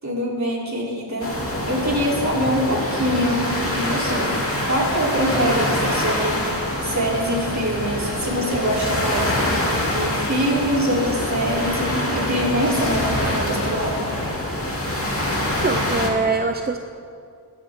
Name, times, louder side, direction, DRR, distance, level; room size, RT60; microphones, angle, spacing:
voice 1, 0.0-1.3 1.6-14.0, equal, 35° right, -4 dB, 3.4 m, -24 dB
sound 1, 1.2-16.1, left 1 dB, 30° left, 2.6 m, -25 dB
voice 2, 15.6-16.8, right 3 dB, 20° right, 6 dB, 0.6 m, -23 dB
17.0 x 11.5 x 3.6 m, 2.3 s
cardioid pair, 45°, 46 cm